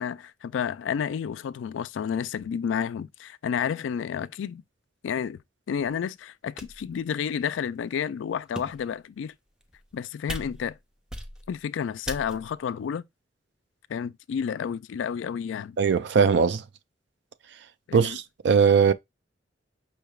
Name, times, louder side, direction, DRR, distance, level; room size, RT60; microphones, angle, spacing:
voice 1, 0.0-4.6 5.0-5.4 5.7-9.3 9.9-10.7 11.5-13.0 13.9-15.8 17.9-18.2, left 7 dB, 85° left, 0.3 m, -30 dB
sound 1, 5.8-5.9 6.6-6.9 7.6-7.7 8.4-8.9 9.6-10.0 10.3-10.8 11.1-11.6 12.1-12.6, equal, 5° right, 0.4 m, -38 dB
voice 2, 15.8-16.6 17.9-18.9, right 6 dB, 65° right, 0.4 m, -20 dB
5.6 x 3.3 x 2.3 m
head